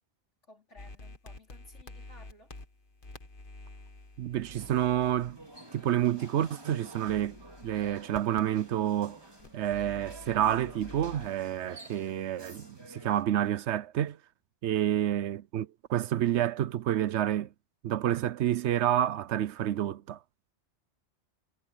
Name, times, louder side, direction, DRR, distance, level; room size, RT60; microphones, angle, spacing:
voice 1, 0.5-2.5 14.9-15.1, left 2 dB, 80° left, 4.6 m, -57 dB
sound 1, 0.8-12.7, left 2 dB, 45° left, 1.8 m, -51 dB
voice 2, 4.2-5.4 5.7-7.4 7.6-9.2 9.5-14.2 14.6-17.5 17.8-20.2, right 11 dB, 75° right, 0.9 m, -29 dB
sound 2, 4.6-13.2, right 1 dB, 20° right, 3.1 m, -50 dB
omnidirectional pair, 1.2 m